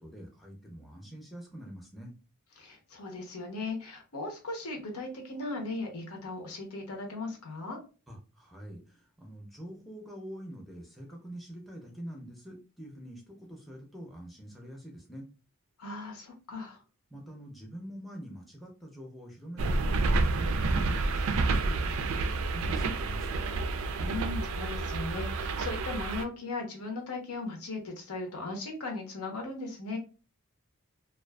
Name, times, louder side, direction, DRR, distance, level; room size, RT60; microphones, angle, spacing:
voice 1, 0.0-2.1 8.1-15.3 17.1-23.4, equal, ahead, 0 dB, 0.5 m, -45 dB
voice 2, 2.6-7.8 15.8-16.8 24.0-30.0, left 3 dB, 85° left, 2 dB, 0.8 m, -37 dB
sound 1, 19.6-26.2, right 3 dB, 65° right, 0.3 m, -29 dB
2.4 x 2.3 x 2.2 m, 0.34 s
head